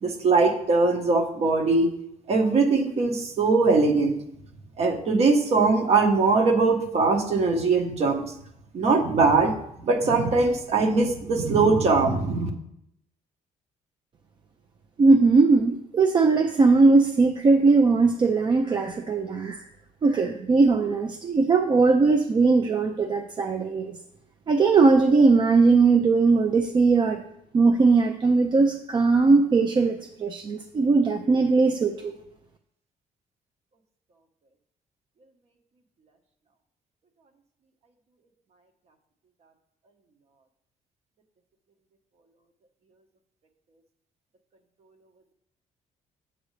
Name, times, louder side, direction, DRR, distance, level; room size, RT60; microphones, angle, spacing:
voice 1, 0.0-1.9 2.3-4.1 4.8-8.2 8.7-9.5 9.8-12.5, right 3 dB, 50° right, 4 dB, 1.2 m, -21 dB
voice 2, 15.0-19.6 20.0-24.0 24.5-27.2 27.5-32.1, right 4 dB, 35° right, 5 dB, 0.5 m, -20 dB
7.9 x 7.8 x 3.2 m, 0.76 s
cardioid pair, 130°, 14 cm